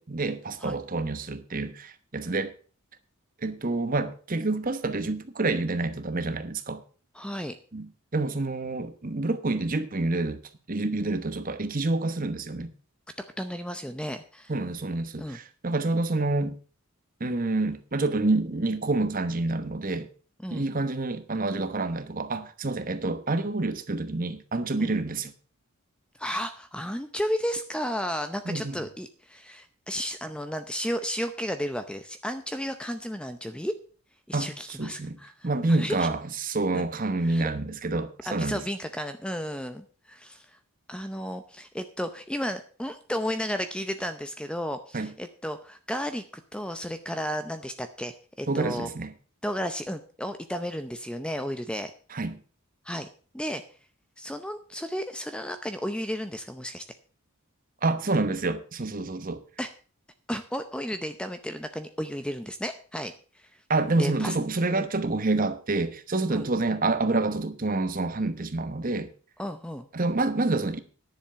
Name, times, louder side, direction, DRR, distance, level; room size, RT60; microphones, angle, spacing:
voice 1, 0.0-2.5 3.4-6.8 7.7-10.4 10.7-12.7 14.5-16.6 17.2-20.1 20.5-25.3 28.5-28.8 34.3-34.5 34.8-35.2 35.4-38.6 44.9-45.1 48.5-49.1 52.1-52.4 57.8-59.4 63.7-69.1 69.9-70.8, right 2 dB, 40° right, 1.0 m, -28 dB
voice 2, 7.1-7.6 13.4-14.5 15.2-15.4 20.4-20.7 24.8-25.0 26.2-33.7 34.3-36.1 36.7-36.9 37.2-37.5 38.2-40.6 40.9-46.2 46.5-48.9 49.4-51.9 52.8-53.1 53.3-53.6 54.2-56.8 59.6-59.7 60.3-63.5 64.0-64.3 64.8-64.9 66.3-66.5 69.4-69.9, equal, 5° left, 0.6 m, -33 dB
10.5 x 7.2 x 6.8 m
head